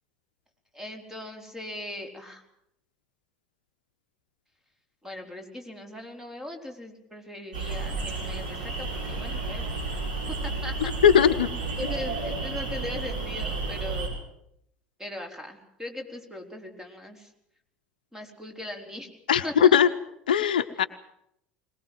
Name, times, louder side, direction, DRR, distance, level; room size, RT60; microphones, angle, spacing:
voice 1, 0.7-2.4 5.0-9.7 10.3-10.7 11.8-14.1 15.0-17.3 18.1-19.1 19.4-19.8, left 1 dB, 10° right, 4 dB, 4.4 m, -39 dB
sound 1, 7.5-14.1, right 3 dB, 70° right, 7.3 m, -32 dB
voice 2, 11.0-11.5 19.3-19.9 20.3-20.9, left 8 dB, 70° left, 11 dB, 0.9 m, -19 dB
22.0 x 20.5 x 7.7 m, 0.76 s
figure-of-eight pair, 70°, 5 cm